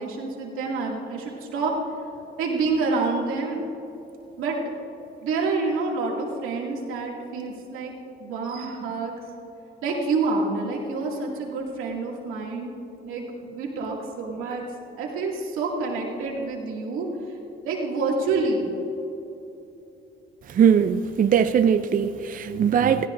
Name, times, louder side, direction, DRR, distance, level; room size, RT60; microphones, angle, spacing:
voice 1, 0.0-1.7 2.4-3.6 4.4-4.6 5.2-7.9 8.2-9.2 9.8-12.7 13.0-14.6 15.0-17.4 17.6-18.7, right 3 dB, 85° right, -2 dB, 2.4 m, -28 dB
voice 2, 20.5-23.1, right 7 dB, 40° right, 9 dB, 0.5 m, -20 dB
18.5 x 15.5 x 2.6 m, 3.0 s
cardioid pair, 90°, 21 cm